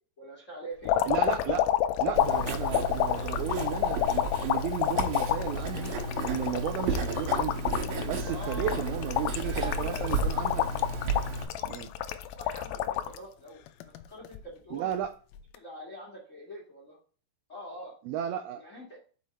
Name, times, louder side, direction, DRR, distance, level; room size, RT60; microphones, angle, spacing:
voice 1, 0.2-0.9 2.6-3.4 8.2-9.0 9.4-10.1 12.2-14.9 15.5-17.0 17.5-18.0 18.6-19.0, equal, 55° left, -2 dB, 0.8 m, -44 dB
sound 1, 0.9-13.2 13.7-14.4 15.4-15.6, left 11 dB, 90° left, 2.1 m, -29 dB
voice 2, 1.1-1.7 2.0-6.0 6.2-7.6 8.0-10.6 11.7-11.9 14.7-15.1 18.1-18.6, right 10 dB, 85° right, 7 dB, 2.2 m, -34 dB
Writing, 2.2-11.5, right 2 dB, 70° right, 2.6 m, -33 dB
sound 2, 3.4-11.8, left 1 dB, 10° left, 2.4 m, -50 dB
6.2 x 5.3 x 4.2 m, 0.39 s
omnidirectional pair, 4.8 m